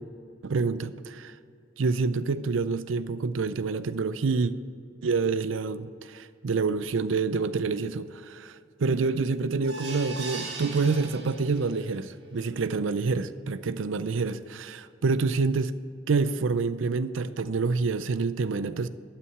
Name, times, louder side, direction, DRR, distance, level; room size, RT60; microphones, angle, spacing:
voice 1, 0.4-1.3 1.8-4.5 5.0-15.7 16.1-18.9, right 4 dB, 90° right, 14 dB, 0.5 m, -27 dB
sound 1, 9.6-11.9 12.3-12.4 12.8-12.9, right 3 dB, 60° right, 1.5 m, -39 dB
12.5 x 6.0 x 9.5 m, 2.5 s
head